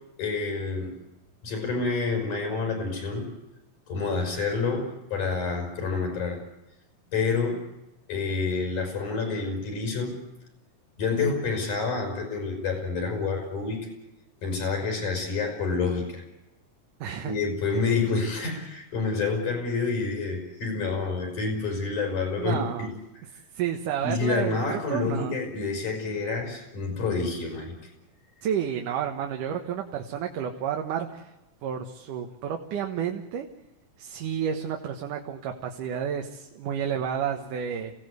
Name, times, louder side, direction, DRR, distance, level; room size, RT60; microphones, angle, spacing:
voice 1, 0.2-0.9 1.4-3.3 3.9-6.4 7.1-7.6 8.1-10.1 11.0-13.8 14.4-16.2 17.2-22.9 24.0-27.7, left 4 dB, 75° left, 2 dB, 6.7 m, -28 dB
voice 2, 17.0-17.3 22.4-22.9 23.5-25.4 28.4-31.3 31.6-33.5 34.0-37.9, right 8 dB, 85° right, 3 dB, 2.9 m, -31 dB
27.5 x 17.0 x 8.1 m, 0.97 s
omnidirectional pair, 3.6 m